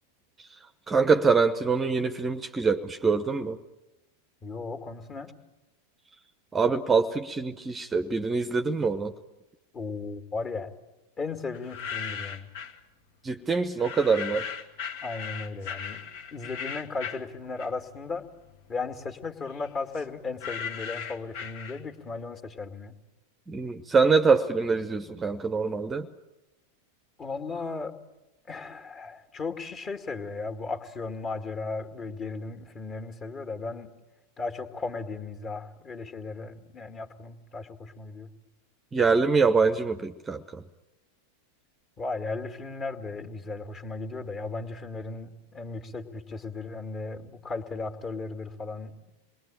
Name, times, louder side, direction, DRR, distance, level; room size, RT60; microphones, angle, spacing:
voice 1, 0.9-3.6 6.5-9.1 13.2-14.4 23.5-26.1 38.9-40.6, right 4 dB, 15° right, 10 dB, 0.9 m, -24 dB
voice 2, 4.4-5.3 9.7-10.7 11.2-12.5 15.0-16.0 16.3-18.3 18.7-23.0 27.2-27.9 28.5-33.9 34.4-38.3 42.0-49.1, left 3 dB, 25° left, 7 dB, 2.3 m, -36 dB
sound 1, 11.5-12.8 13.8-18.0 18.4-22.1, left 7 dB, 50° left, 1.8 m, -38 dB
27.5 x 21.0 x 8.9 m, 1.0 s
figure-of-eight pair, 90°, 0 cm